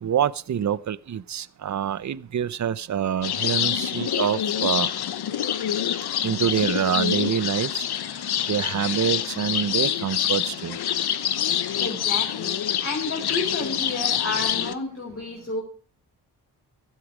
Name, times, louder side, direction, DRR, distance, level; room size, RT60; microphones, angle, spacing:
voice 1, 0.0-4.9 6.2-7.8 8.5-10.8, right 9 dB, 45° right, 0.8 m, -26 dB
sound 1, 3.2-14.7, left 10 dB, 70° left, 1.1 m, -26 dB
voice 2, 11.8-15.6, left 2 dB, 35° left, 5.3 m, -31 dB
15.5 x 12.0 x 5.1 m
cardioid pair, 60°, 40 cm